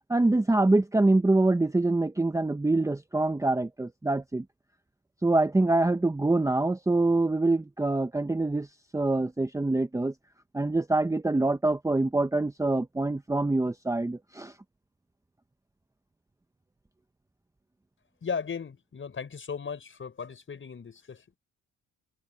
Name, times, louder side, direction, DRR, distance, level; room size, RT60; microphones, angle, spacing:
voice 1, 0.1-4.4 5.2-8.7 8.9-10.1 10.5-14.5, right 2 dB, 10° right, 0.9 m, -25 dB
voice 2, 18.2-21.4, left 6 dB, 40° left, 6.8 m, -36 dB
cardioid pair, 90°, 30 cm